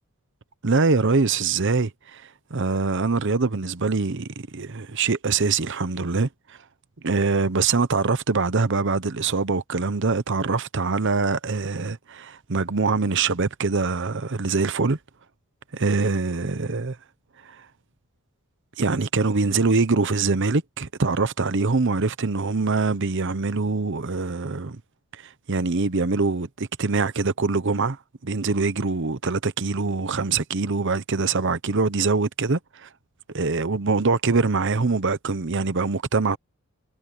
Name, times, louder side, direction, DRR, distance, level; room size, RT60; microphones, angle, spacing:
voice 1, 0.6-6.6 7.0-15.0 15.7-17.0 17.4-17.6 18.8-24.8 25.1-32.9 33.3-36.4, right 4 dB, 55° right, 0.9 m, -24 dB
head